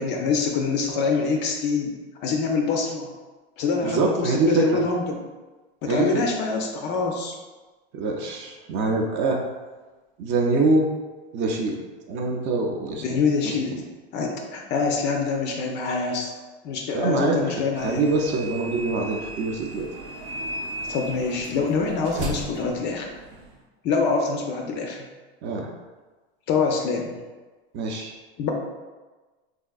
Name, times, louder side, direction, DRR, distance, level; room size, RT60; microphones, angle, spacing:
voice 1, 0.0-1.9 2.2-3.1 3.6-5.2 5.8-7.3 13.0-13.8 14.1-16.3 16.6-18.0 20.9-23.1 23.8-25.1 26.5-27.1 28.4-28.5, left 4 dB, 35° left, 2 dB, 0.4 m, -25 dB
voice 2, 3.8-4.7 5.9-6.1 7.9-9.4 10.2-10.9 11.3-11.8 12.1-13.2 13.4-13.6 16.9-17.5 17.8-19.9 25.4-25.7 27.7-28.1, right 3 dB, 35° right, 1 dB, 0.4 m, -24 dB
sound 1, 17.7-23.6, right 2 dB, 80° right, 0.7 m, -36 dB
3.5 x 2.5 x 2.3 m, 1.3 s
supercardioid pair, 125°, 32 cm